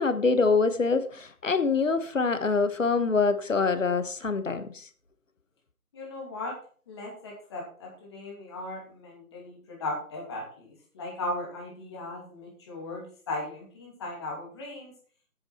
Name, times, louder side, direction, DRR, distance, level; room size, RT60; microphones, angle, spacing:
voice 1, 0.0-4.8, left 4 dB, 55° left, 11 dB, 1.3 m, -25 dB
voice 2, 5.9-6.5 6.9-14.9, left 2 dB, 20° left, -2 dB, 2.7 m, -37 dB
9.8 x 9.0 x 4.4 m, 0.43 s
figure-of-eight pair, 160°, 44 cm